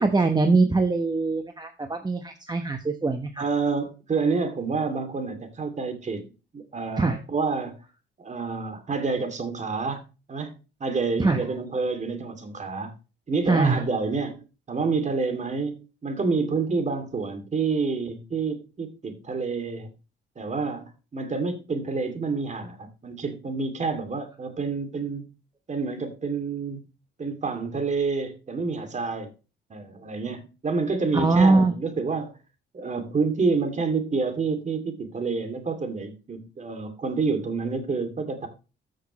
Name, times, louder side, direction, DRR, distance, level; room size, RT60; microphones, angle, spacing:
voice 1, 0.0-3.4 7.0-7.2 11.2-11.4 13.5-13.8 31.1-31.7, right 3 dB, 20° right, 6 dB, 1.0 m, -22 dB
voice 2, 3.4-6.2 6.5-7.8 8.2-10.0 10.3-10.5 10.8-12.9 13.3-19.9 20.4-25.3 25.7-26.9 27.2-29.3 29.7-32.3 32.7-38.5, right 4 dB, 35° right, 7 dB, 2.4 m, -28 dB
14.0 x 6.5 x 3.0 m, 0.31 s
cardioid pair, 90°, 20 cm